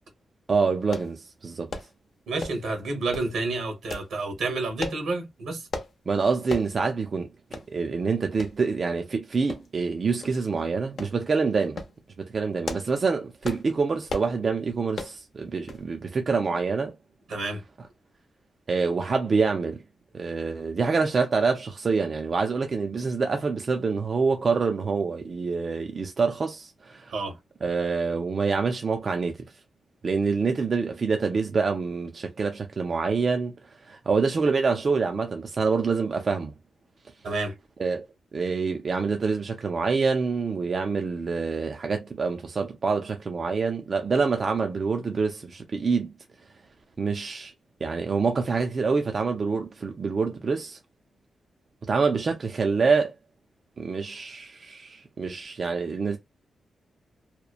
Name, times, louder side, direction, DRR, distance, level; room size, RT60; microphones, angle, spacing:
voice 1, 0.5-1.7 6.1-11.8 12.2-16.9 18.7-19.8 20.1-27.1 27.6-29.3 30.0-33.5 33.9-36.5 37.8-38.1 38.3-46.1 47.0-47.5 47.8-50.8 51.9-53.1 53.8-56.2, right 4 dB, 40° right, 0.4 m, -26 dB
sound 1, 0.9-1.1 1.7-1.9 2.4-2.7 3.1-3.3 3.9-4.1 4.8-5.0 5.7-5.9 6.5-6.7 7.1-7.2 7.5-7.7 8.4-8.5 9.5-9.9 10.2-10.4 11.0-11.2 11.6-11.9 12.4-13.0 13.4-13.7 14.1-14.3 14.9-15.2 15.7-15.9 16.2-16.3, left 3 dB, 50° left, 0.6 m, -35 dB
voice 2, 2.3-5.7 17.3-17.6 27.1-27.4 37.2-37.6, right 3 dB, 80° right, 1.1 m, -29 dB
2.8 x 2.0 x 2.3 m
wide cardioid pair, 145°, 0 cm